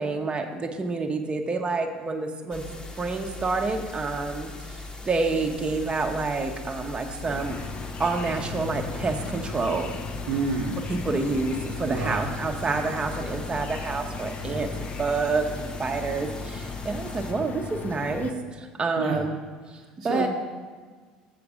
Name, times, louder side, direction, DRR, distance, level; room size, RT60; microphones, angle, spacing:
voice 1, 0.0-2.6 3.0-4.8 5.1-7.6 8.0-10.0 10.9-14.7 15.0-19.4 20.0-20.3, right 3 dB, 25° right, 3 dB, 0.9 m, -28 dB
sound 1, 2.5-17.3, left 2 dB, 20° left, 1.1 m, -40 dB
sound 2, 7.2-18.3, left 4 dB, 40° left, 0.6 m, -37 dB
voice 2, 10.3-10.8 11.8-12.3 14.4-14.7 19.0-19.3 19.7-20.3, right 4 dB, 80° right, -2 dB, 0.8 m, -30 dB
7.0 x 5.9 x 5.0 m, 1.5 s
hypercardioid pair, 70°, 4 cm